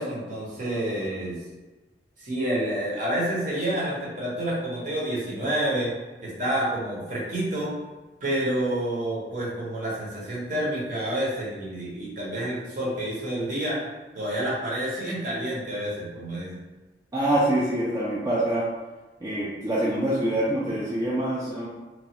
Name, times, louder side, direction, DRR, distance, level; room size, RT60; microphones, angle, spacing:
voice 1, 0.0-1.4 2.2-5.9 6.2-7.7 8.2-13.8 14.1-16.6, right 1 dB, 45° right, -6 dB, 1.0 m, -28 dB
voice 2, 17.1-18.7 19.2-21.7, right 1 dB, 20° right, -7 dB, 0.4 m, -25 dB
3.0 x 2.3 x 2.9 m, 1.2 s
head